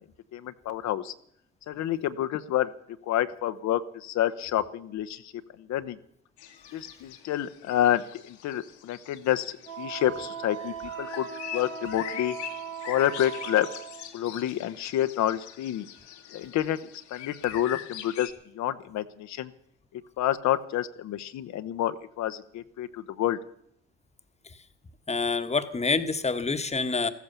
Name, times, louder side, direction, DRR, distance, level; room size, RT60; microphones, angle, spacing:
voice 1, 0.3-1.1 1.7-2.7 3.1-5.3 5.6-6.0 6.7-11.3 11.5-12.3 12.8-13.7 14.1-15.9 16.3-16.8 17.1-19.5 20.2-23.4, left 12 dB, 55° left, 11 dB, 1.0 m, -28 dB
sound 1, 6.4-18.3, left 11 dB, 85° left, 1.9 m, -43 dB
Wind instrument woodwind instrument, 9.6-14.1, right 7 dB, 80° right, 2.4 m, -38 dB
voice 2, 25.1-27.1, left 4 dB, 20° left, 10 dB, 1.4 m, -27 dB
14.5 x 14.5 x 6.9 m, 0.69 s
hypercardioid pair, 60°, 33 cm